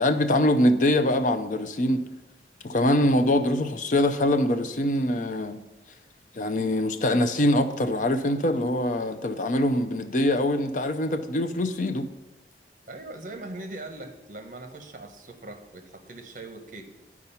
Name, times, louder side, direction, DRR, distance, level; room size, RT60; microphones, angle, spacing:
voice 1, 0.0-2.0 2.6-5.6 6.3-12.1, left 1 dB, 45° left, 8 dB, 0.5 m, -23 dB
voice 2, 12.9-16.9, right 2 dB, 45° right, 6 dB, 1.0 m, -41 dB
10.5 x 4.8 x 5.6 m, 1.0 s
head